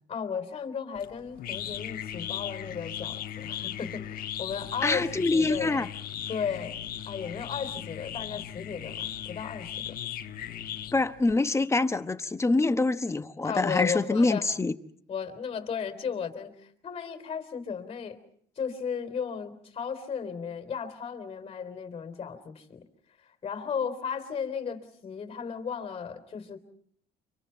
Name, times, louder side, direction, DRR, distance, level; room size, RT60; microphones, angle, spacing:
voice 1, 0.1-5.8 6.3-10.0 13.4-14.5 15.1-18.2 18.6-22.8 23.4-26.6, left 6 dB, 35° left, 3.8 m, -35 dB
sound 1, 1.0-11.3, left 11 dB, 60° left, 1.3 m, -38 dB
voice 2, 4.8-5.9 10.9-14.7, left 3 dB, 15° left, 1.1 m, -25 dB
30.0 x 26.0 x 4.5 m
cardioid pair, 110°, 17 cm